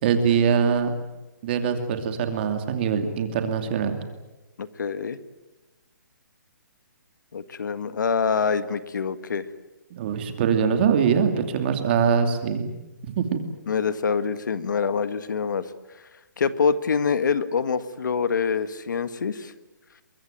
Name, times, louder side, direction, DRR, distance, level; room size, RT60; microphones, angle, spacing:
voice 1, 0.0-0.9 1.4-4.0 9.9-12.7 13.2-13.4, right 7 dB, 35° right, 7 dB, 2.7 m, -23 dB
voice 2, 4.6-5.2 7.3-9.5 13.7-15.7 16.4-19.5, left 6 dB, 70° left, 12 dB, 1.7 m, -25 dB
24.0 x 22.5 x 9.2 m, 1.1 s
hypercardioid pair, 165°, 10 cm